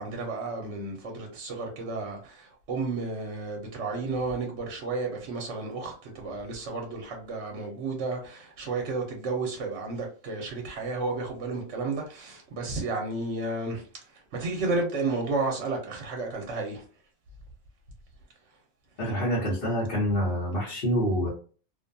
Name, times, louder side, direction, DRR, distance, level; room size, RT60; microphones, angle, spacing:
voice 1, 0.0-13.8 14.3-16.8, right 3 dB, 65° right, 0.9 m, -32 dB
voice 2, 19.0-21.3, equal, 45° left, 1.0 m, -26 dB
2.5 x 2.2 x 2.6 m
omnidirectional pair, 1.4 m